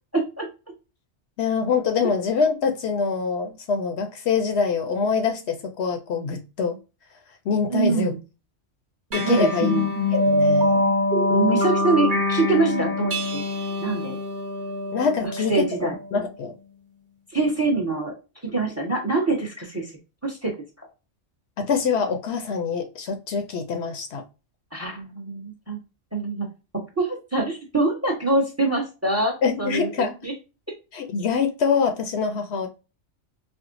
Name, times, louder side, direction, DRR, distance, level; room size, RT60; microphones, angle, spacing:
voice 1, 0.1-0.5 7.7-8.2 9.2-9.9 11.3-13.4 13.8-14.2 15.2-16.0 17.3-18.2 18.4-19.9 20.2-20.5 24.7-25.8 26.1-26.5 27.0-30.3, right 3 dB, 15° right, 0.8 m, -24 dB
voice 2, 1.4-6.8 7.5-8.1 9.1-9.7 10.3-11.0 14.9-16.5 21.6-24.2 29.4-30.2 30.9-32.7, left 5 dB, 70° left, 0.8 m, -25 dB
sound 1, 9.1-16.0, left 1 dB, 45° right, 1.1 m, -24 dB
4.4 x 2.1 x 2.5 m
omnidirectional pair, 1.2 m